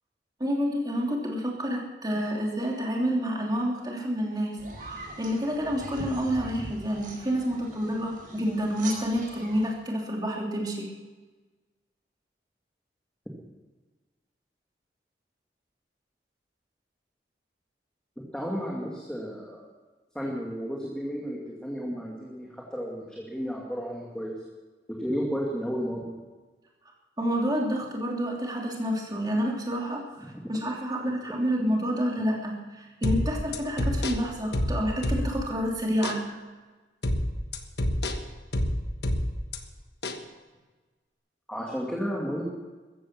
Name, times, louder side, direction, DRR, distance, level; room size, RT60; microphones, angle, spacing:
voice 1, 0.4-10.9 27.2-30.0 30.5-36.3, equal, 25° right, -1 dB, 3.0 m, -29 dB
sound 1, 4.6-9.7, right 2 dB, 50° right, 4.7 m, -42 dB
voice 2, 18.3-19.7 20.1-24.3 25.0-26.0 30.2-30.4 31.3-31.4 41.5-42.4, equal, 5° left, -4 dB, 2.5 m, -33 dB
sound 2, 33.0-35.6 36.0-36.2 37.0-39.6 40.0-40.2, left 1 dB, 65° left, 1.3 m, -28 dB
15.0 x 14.5 x 6.1 m, 1.3 s
head